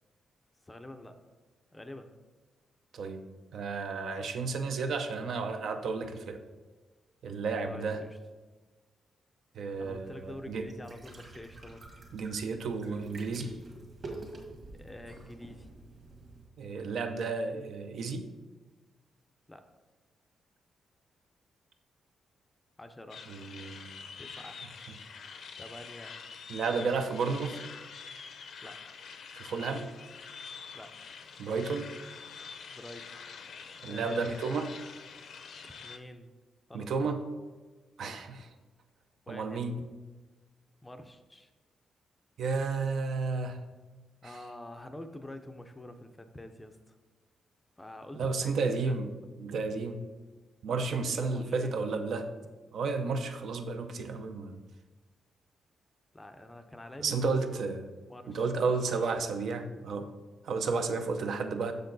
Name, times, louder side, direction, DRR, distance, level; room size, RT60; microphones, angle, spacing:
voice 1, 0.6-1.2 1.7-2.1 7.7-8.2 9.8-11.8 14.7-15.7 19.5-19.7 22.8-23.2 24.2-24.7 25.6-26.2 28.6-28.8 30.7-30.9 32.7-33.1 33.9-34.4 35.6-36.3 36.7-36.9 38.0-38.2 39.3-39.6 40.8-41.5 44.2-47.0 47.8-48.9 50.9-51.7 56.1-57.5 58.1-59.1, left 1 dB, 10° left, 7 dB, 0.5 m, -47 dB
voice 2, 2.9-3.2 3.5-6.4 7.2-8.0 9.5-10.6 12.1-13.5 16.6-18.3 23.3-23.9 26.5-27.6 29.3-29.9 31.4-31.9 33.8-34.7 36.7-37.2 38.0-38.4 39.3-39.8 42.4-43.6 44.2-44.4 48.1-49.1 49.4-50.0 50.6-52.3 52.7-54.6 57.0-57.9 58.3-60.1 60.4-61.7, right 4 dB, 65° right, 7 dB, 0.6 m, -32 dB
sound 1, 9.7-16.4, right 2 dB, 40° right, 1.6 m, -48 dB
sound 2, 23.1-36.0, left 6 dB, 65° left, 0.6 m, -46 dB
6.7 x 6.5 x 4.0 m, 1.3 s
cardioid pair, 140°, 0 cm